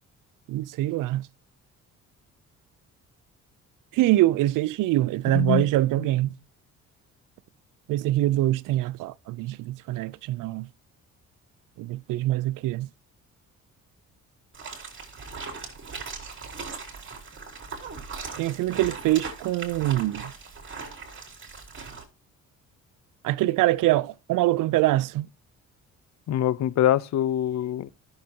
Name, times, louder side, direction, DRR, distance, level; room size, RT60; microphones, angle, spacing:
voice 1, 0.5-1.3 3.9-6.4 7.9-10.7 11.8-12.9 18.4-20.3 23.2-25.3, right 16 dB, 80° right, 0.5 m, -24 dB
voice 2, 5.3-5.6 26.3-27.9, left 12 dB, 60° left, 0.6 m, -24 dB
sound 1, 14.5-22.0, right 4 dB, 40° right, 3.2 m, -39 dB
13.5 x 6.6 x 2.8 m
cardioid pair, 95°, 31 cm